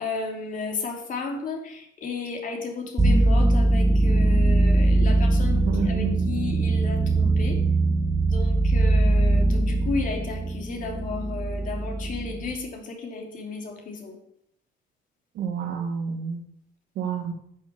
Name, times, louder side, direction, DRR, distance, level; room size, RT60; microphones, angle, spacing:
voice 1, 0.0-7.6 8.2-14.2, left 4 dB, 50° left, 2 dB, 3.0 m, -33 dB
sound 1, 3.0-12.6, right 2 dB, 15° right, 1.3 m, -21 dB
voice 2, 5.7-6.4 15.4-16.4 17.0-17.3, right 6 dB, 75° right, 5 dB, 1.9 m, -29 dB
10.5 x 6.5 x 7.0 m, 0.71 s
cardioid pair, 110°, 17 cm